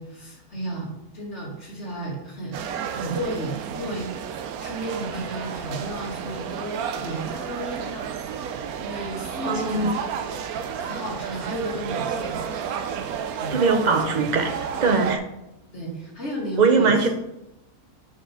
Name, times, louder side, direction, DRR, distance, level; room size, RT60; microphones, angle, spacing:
voice 1, 0.0-4.1 4.6-8.1 8.8-10.4 10.8-12.4 13.4-13.6 15.7-17.1, right 1 dB, 50° left, -3 dB, 2.6 m, -33 dB
sound 1, 2.5-15.2, right 7 dB, 90° right, 1.1 m, -32 dB
voice 2, 9.5-9.9 13.5-15.3 16.6-17.1, right 4 dB, 35° right, 6 dB, 0.8 m, -21 dB
7.1 x 5.5 x 5.7 m, 0.90 s
omnidirectional pair, 1.5 m